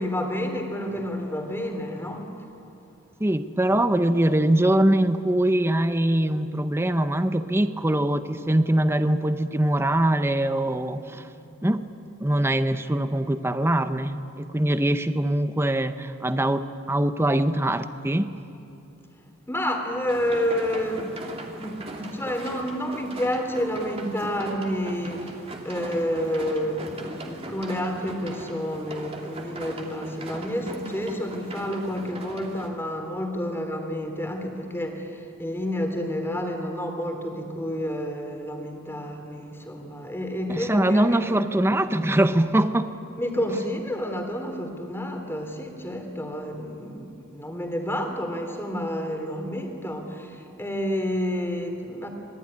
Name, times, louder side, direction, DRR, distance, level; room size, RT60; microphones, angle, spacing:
voice 1, 0.0-2.3 19.5-41.4 43.2-52.1, equal, 10° left, 3 dB, 3.3 m, -29 dB
voice 2, 3.2-11.2 11.6-11.9 12.2-18.3 40.5-43.0, right 1 dB, 10° right, 10 dB, 0.7 m, -23 dB
sound 1, 20.1-32.7, right 2 dB, 30° right, 2.8 m, -40 dB
26.0 x 20.5 x 9.9 m, 2.7 s
head